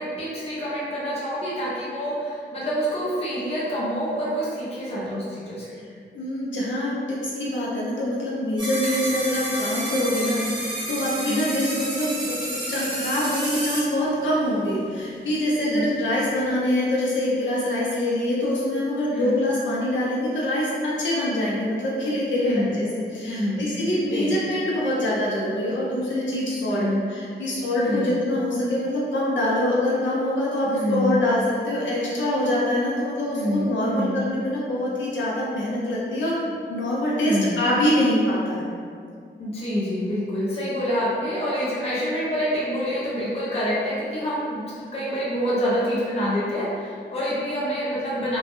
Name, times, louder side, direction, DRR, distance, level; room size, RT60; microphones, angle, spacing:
voice 1, 0.0-5.8 11.2-11.4 15.6-15.9 19.1-19.4 22.4-22.8 23.3-23.8 24.1-24.3 26.7-27.0 27.8-28.2 30.7-31.2 33.3-34.2 37.1-37.6 39.4-44.6 44.9-48.4, equal, 35° left, -7 dB, 0.5 m, -27 dB
voice 2, 6.1-36.3 36.7-38.7, left 1 dB, 90° left, -5 dB, 0.5 m, -24 dB
sound 1, 8.6-13.8, right 1 dB, 25° right, 0.6 m, -30 dB
2.1 x 2.0 x 2.9 m, 2.2 s
wide cardioid pair, 130°, 19 cm